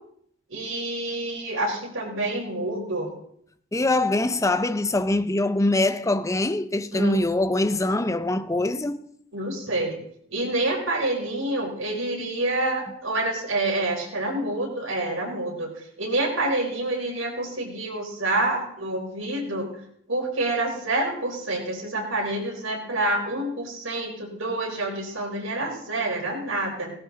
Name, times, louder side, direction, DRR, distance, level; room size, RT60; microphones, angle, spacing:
voice 1, 0.5-3.1 6.9-7.2 9.3-10.0 10.3-15.7 16.0-19.7 20.1-26.9, right 2 dB, 85° right, 4.4 m, -27 dB
voice 2, 3.7-9.0, left 2 dB, 15° left, 0.5 m, -23 dB
17.5 x 12.5 x 4.0 m
head